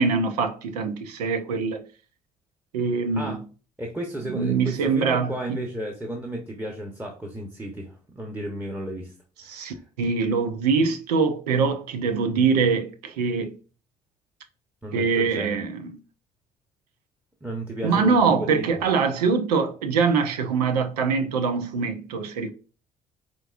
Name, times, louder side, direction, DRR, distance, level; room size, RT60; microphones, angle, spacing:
voice 1, 0.0-1.8 2.7-3.4 4.3-5.6 9.4-13.5 14.9-16.0 17.8-22.5, right 5 dB, 85° right, 0.5 m, -23 dB
voice 2, 3.8-9.1 9.4-9.8 14.8-15.6 17.4-18.7, right 1 dB, 10° right, 0.9 m, -33 dB
4.5 x 3.6 x 2.5 m
hypercardioid pair, 55°, 20 cm